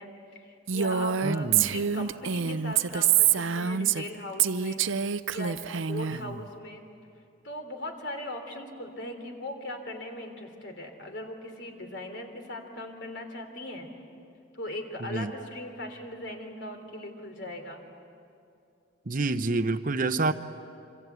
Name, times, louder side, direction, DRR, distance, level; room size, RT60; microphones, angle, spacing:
voice 1, 0.0-4.8 5.3-6.8 7.4-13.9 14.5-17.8, left 1 dB, 60° left, 5 dB, 3.3 m, -39 dB
Female speech woman speaking, 0.7-4.1 4.4-6.2, right 8 dB, 75° right, 0.6 m, -26 dB
voice 2, 1.2-1.7 6.1-6.4 15.0-15.3 19.1-20.3, right 3 dB, 40° right, 10 dB, 0.8 m, -28 dB
26.5 x 26.0 x 8.2 m, 2.6 s
head